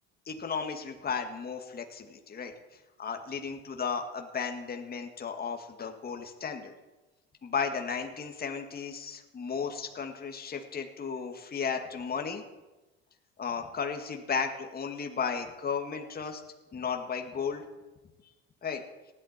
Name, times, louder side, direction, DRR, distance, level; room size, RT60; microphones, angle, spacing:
voice 1, 0.3-2.5 3.0-6.7 7.4-12.4 13.4-16.4 16.7-17.6 18.6-18.8, left 6 dB, 30° left, 4 dB, 2.0 m, -34 dB
19.0 x 13.0 x 4.4 m, 1.1 s
hypercardioid pair, 80°, 31 cm